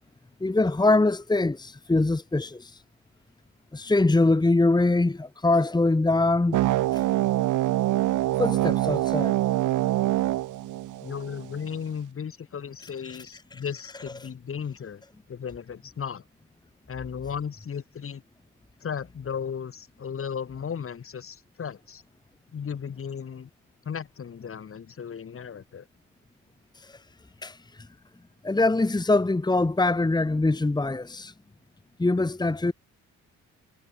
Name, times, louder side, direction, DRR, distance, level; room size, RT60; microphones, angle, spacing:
voice 1, 0.4-2.8 3.7-6.6 6.9-7.0 8.4-9.3 13.1-13.2 13.5-13.6 26.8-27.0 27.4-27.6 28.4-31.3 32.0-32.7, left 2 dB, 15° left, 1.9 m, -23 dB
sound 1, 6.5-11.5, right 15 dB, 85° right, 1.7 m, -25 dB
voice 2, 11.0-15.0 15.3-16.2 16.9-18.2 18.8-22.0 22.5-23.5 23.9-25.9, left 7 dB, 45° left, 3.5 m, -35 dB
cardioid pair, 90°, 30 cm